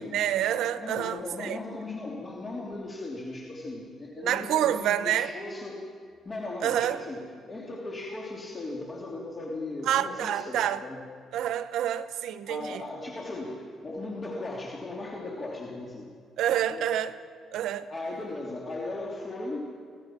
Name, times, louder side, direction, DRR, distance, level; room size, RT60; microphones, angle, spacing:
voice 1, 0.0-1.6 4.2-5.3 6.6-7.0 9.9-10.8 11.3-12.8 16.4-17.1 17.5-17.9, right 11 dB, 85° right, 0.9 m, -28 dB
voice 2, 0.8-5.8 6.2-11.0 12.4-16.1 16.7-16.9 17.9-19.8, left 2 dB, 30° left, 3.1 m, -37 dB
25.5 x 18.5 x 6.1 m
cardioid pair, 115°, 0 cm